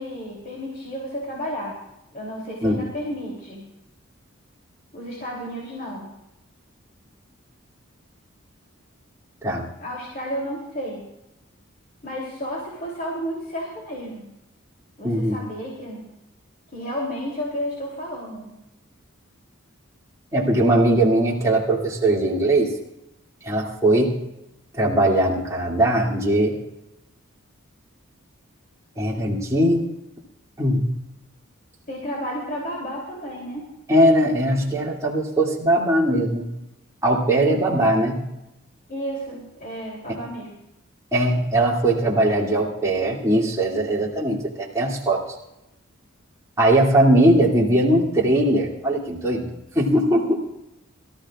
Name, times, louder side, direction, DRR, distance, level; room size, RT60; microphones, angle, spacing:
voice 1, 0.0-1.8 2.1-3.6 4.9-6.1 9.8-11.0 12.0-14.2 15.0-16.0 16.7-18.5 31.9-33.7 38.9-40.5, equal, 40° left, -3 dB, 3.2 m, -32 dB
voice 2, 15.0-15.4 20.3-22.7 23.4-24.2 24.8-26.6 29.0-29.9 30.6-30.9 33.9-36.5 37.0-38.2 40.1-40.2 41.1-45.3 46.6-49.5 49.7-50.4, right 1 dB, 15° right, -5 dB, 2.5 m, -20 dB
23.5 x 14.0 x 2.5 m, 0.88 s
head